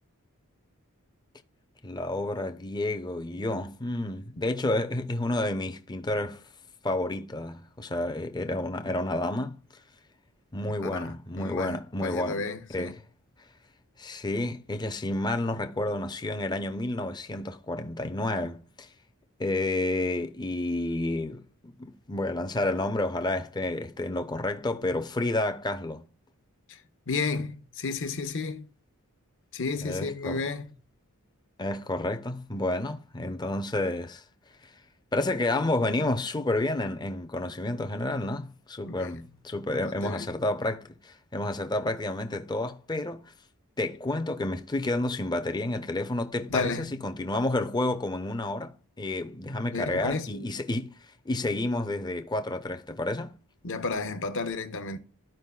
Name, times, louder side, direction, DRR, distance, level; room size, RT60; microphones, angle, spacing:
voice 1, 1.8-6.4 6.8-9.6 10.5-12.5 12.7-13.0 14.0-18.9 19.4-26.1 29.8-30.4 31.6-34.2 35.1-43.2 43.8-50.9 51.3-53.3, left 2 dB, 20° left, 0.6 m, -30 dB
voice 2, 11.3-13.0 26.7-26.8 27.1-28.7 29.5-30.7 38.8-39.4 39.9-40.3 46.5-47.0 49.7-50.6 53.6-55.0, left 4 dB, 60° left, 1.0 m, -33 dB
13.5 x 5.0 x 2.3 m
head